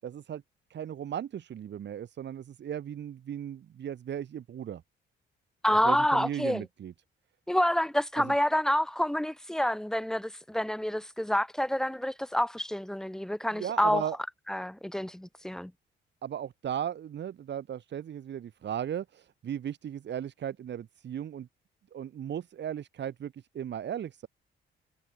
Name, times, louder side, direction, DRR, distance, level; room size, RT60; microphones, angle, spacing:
voice 1, 0.0-0.4 0.7-4.8 5.7-6.9 8.2-8.3 13.5-14.2 16.2-21.5 21.9-24.3, right 9 dB, 65° right, 5.4 m, -36 dB
voice 2, 5.6-6.7 7.5-14.0 14.5-15.7, equal, 5° left, 0.5 m, -28 dB
cardioid pair, 90°, 20 cm